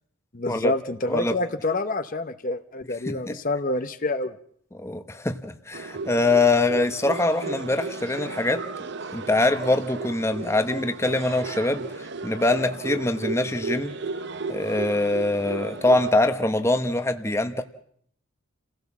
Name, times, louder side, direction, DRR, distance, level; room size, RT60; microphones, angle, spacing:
voice 1, 0.3-4.3, left 2 dB, 40° left, 10 dB, 0.9 m, -27 dB
voice 2, 3.1-3.4 4.7-8.6 9.1-13.9 14.5-17.6, left 2 dB, 15° left, 8 dB, 1.0 m, -23 dB
sound 1, 5.7-16.1, right 3 dB, 55° right, 0.8 m, -34 dB
29.0 x 16.5 x 7.3 m, 0.67 s
head